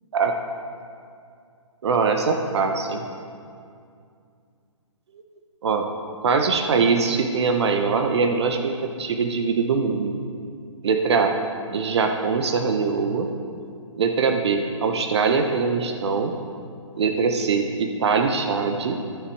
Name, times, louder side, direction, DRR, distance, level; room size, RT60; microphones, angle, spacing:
voice 1, 1.8-3.1 5.6-5.9 6.2-10.2 10.8-11.4 11.7-13.3 14.0-16.3 16.9-19.0, right 5 dB, 55° right, 5 dB, 1.0 m, -22 dB
11.0 x 10.0 x 4.7 m, 2.3 s
hypercardioid pair, 150°, 17 cm